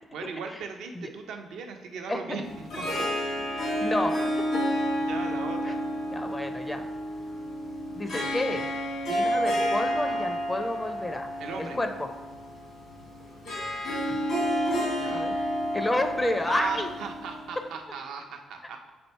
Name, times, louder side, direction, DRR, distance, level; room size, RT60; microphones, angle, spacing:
voice 1, 0.1-3.0 5.1-5.8 11.4-11.8 15.0-15.3 16.5-18.9, right 5 dB, 70° right, 3 dB, 0.5 m, -37 dB
Harp, 2.4-17.7, equal, 65° left, 1.4 m, -30 dB
voice 2, 3.5-4.3 5.7-5.8 6.1-6.8 8.0-8.6 9.1-11.3 11.6-12.1 14.1-14.2 15.1-15.3 15.7-16.9, left 1 dB, 20° left, 6 dB, 0.5 m, -30 dB
4.3 x 2.6 x 4.4 m, 1.2 s
hypercardioid pair, 45°, 0 cm